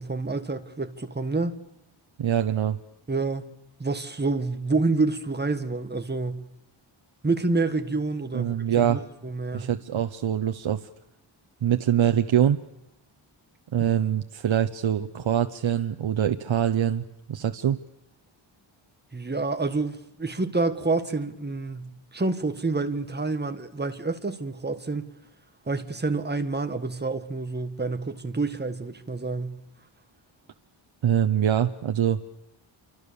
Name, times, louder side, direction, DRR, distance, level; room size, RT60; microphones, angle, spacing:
voice 1, 0.0-1.6 3.1-3.5 3.8-6.4 7.2-9.7 13.8-13.9 19.1-25.1 25.7-29.6, right 3 dB, 20° right, 1.6 m, -28 dB
voice 2, 2.2-2.8 8.3-9.0 9.5-10.9 11.6-12.6 13.7-17.0 17.3-17.8 31.0-32.2, right 9 dB, 70° right, 1.1 m, -24 dB
28.5 x 24.5 x 7.0 m
wide cardioid pair, 145°, 49 cm